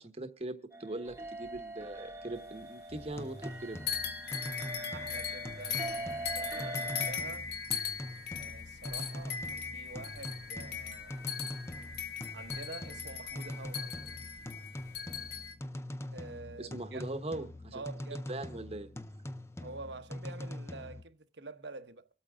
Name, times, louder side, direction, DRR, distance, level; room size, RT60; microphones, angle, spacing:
voice 1, 0.0-3.8 16.6-17.8 18.3-18.9, right 2 dB, 35° right, 1.2 m, -40 dB
sound 1, 0.7-7.1, right 1 dB, 15° right, 1.3 m, -43 dB
sound 2, 1.1-2.6 2.9-3.6 3.9-15.5, left 6 dB, 60° left, 1.6 m, -39 dB
sound 3, 2.9-21.0, left 1 dB, 15° left, 0.6 m, -43 dB
voice 2, 4.9-7.5 8.4-9.4 9.7-11.3 12.3-14.0 16.1-17.0 17.7-18.3 19.6-22.1, right 3 dB, 70° right, 1.0 m, -47 dB
25.5 x 8.8 x 3.6 m
head